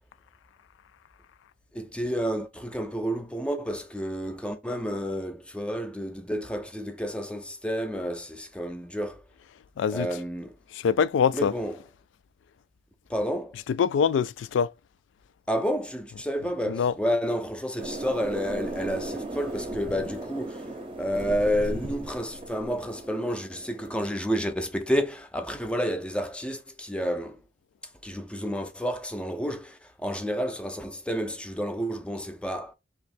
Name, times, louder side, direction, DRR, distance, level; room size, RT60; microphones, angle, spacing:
voice 1, 1.7-9.2 9.9-10.5 11.3-11.8 13.1-13.6 15.5-20.7 21.0-27.4 28.0-32.7, equal, 5° left, 0.5 m, -30 dB
voice 2, 9.8-10.1 10.8-11.5 13.8-14.7 16.7-16.9, left 6 dB, 85° left, 0.3 m, -23 dB
sound 1, 17.8-24.2, right 1 dB, 30° right, 0.7 m, -37 dB
3.0 x 2.8 x 4.1 m
head